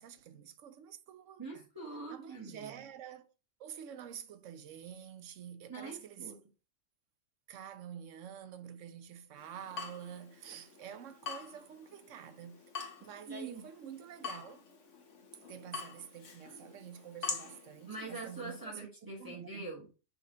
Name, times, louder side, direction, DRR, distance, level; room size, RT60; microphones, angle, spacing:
voice 1, 0.0-1.7 2.1-3.3 3.6-6.3 7.5-12.6 13.0-14.6 15.4-18.9 19.2-19.7, right 9 dB, 90° right, 1.1 m, -48 dB
voice 2, 1.4-2.7 5.7-6.3 13.3-13.6 17.9-19.9, right 3 dB, 15° right, 1.4 m, -44 dB
Water tap faucet / Drip, 9.4-18.6, left 5 dB, 80° left, 1.6 m, -46 dB
5.9 x 4.3 x 3.8 m
omnidirectional pair, 1.2 m